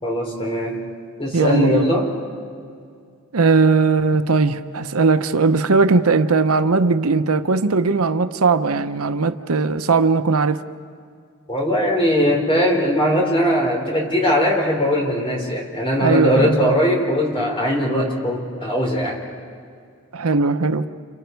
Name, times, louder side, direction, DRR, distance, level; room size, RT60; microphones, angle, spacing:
voice 1, 0.0-0.8 1.2-2.1 11.5-19.2, equal, 25° left, 4.1 m, -20 dB
voice 2, 1.3-1.9 3.3-10.6 16.0-16.7 20.1-20.9, right 4 dB, 85° right, 0.8 m, -18 dB
30.0 x 29.5 x 4.7 m
head